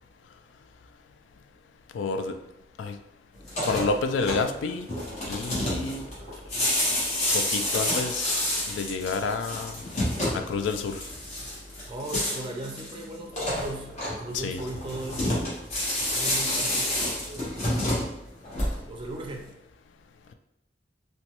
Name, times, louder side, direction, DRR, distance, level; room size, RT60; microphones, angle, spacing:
voice 1, 1.9-2.4 2.8-3.0 3.7-4.9 5.3-6.1 7.3-8.3 8.7-9.8 10.3-11.0 14.3-14.6, left 4 dB, 90° left, 7 dB, 0.3 m, -29 dB
sound 1, 3.4-19.1, left 1 dB, 40° left, 1.0 m, -29 dB
voice 2, 5.9-6.7 11.9-15.4 16.0-18.2 18.9-19.5, right 1 dB, 30° right, 2 dB, 0.4 m, -39 dB
2.9 x 2.2 x 2.9 m, 0.85 s
head